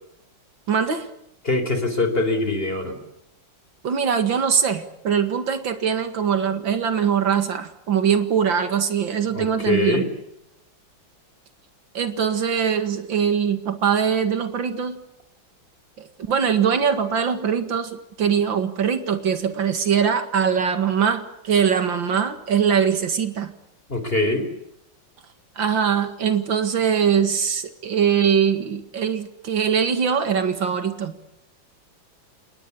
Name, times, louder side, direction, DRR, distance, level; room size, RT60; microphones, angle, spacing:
voice 1, 0.7-1.1 3.8-10.0 11.9-15.0 16.0-23.5 25.6-31.1, right 7 dB, 80° right, 8 dB, 2.7 m, -22 dB
voice 2, 1.4-3.0 9.3-10.1 23.9-24.5, left 2 dB, 30° left, 8 dB, 4.4 m, -23 dB
29.5 x 19.0 x 8.5 m, 0.80 s
omnidirectional pair, 2.1 m